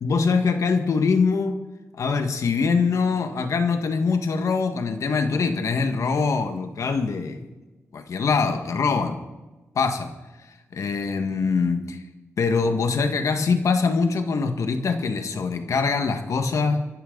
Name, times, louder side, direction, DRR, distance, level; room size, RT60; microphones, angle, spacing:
voice 1, 0.0-1.6 2.0-7.5 7.9-9.2 9.8-10.1 10.7-12.0 12.4-16.9, left 4 dB, 70° left, 6 dB, 1.7 m, -23 dB
25.0 x 11.5 x 4.0 m, 1.1 s
cardioid pair, 65°, 6 cm